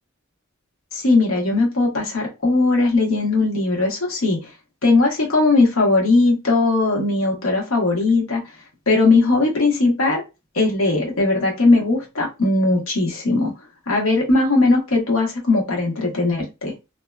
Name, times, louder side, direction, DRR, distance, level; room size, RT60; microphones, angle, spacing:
voice 1, 0.9-4.4 4.8-8.4 8.9-10.2 10.5-13.5 13.9-16.7, left 3 dB, 75° left, -1 dB, 1.1 m, -19 dB
2.7 x 2.1 x 2.3 m, 0.26 s
head